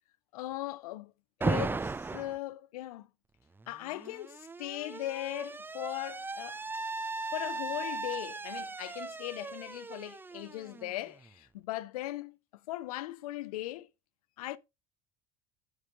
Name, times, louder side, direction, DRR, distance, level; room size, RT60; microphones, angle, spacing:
voice 1, 0.3-1.1 1.4-3.1 3.7-6.6 7.3-12.4 12.7-13.9 14.4-14.6, left 16 dB, 70° left, 0.7 m, -39 dB
Alarm, 1.4-2.4 3.6-11.3, right 3 dB, 10° right, 0.4 m, -37 dB
9.4 x 8.5 x 2.6 m
figure-of-eight pair, 60°, 20 cm